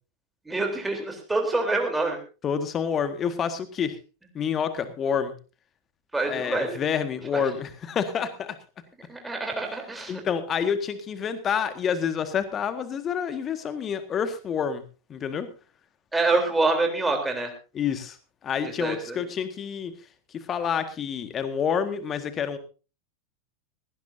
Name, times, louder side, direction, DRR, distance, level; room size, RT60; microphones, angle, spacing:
voice 1, 0.5-2.2 6.1-6.8 7.3-7.5 9.1-10.2 16.1-17.5 18.6-19.2, right 3 dB, 5° right, 3 dB, 3.6 m, -26 dB
voice 2, 2.4-4.0 4.3-5.3 6.2-8.6 10.1-14.8 15.1-15.5 17.7-18.2 18.4-19.9 20.3-22.6, left 7 dB, 25° left, 10 dB, 1.7 m, -28 dB
18.5 x 16.5 x 2.7 m, 0.34 s
figure-of-eight pair, 90°, 0 cm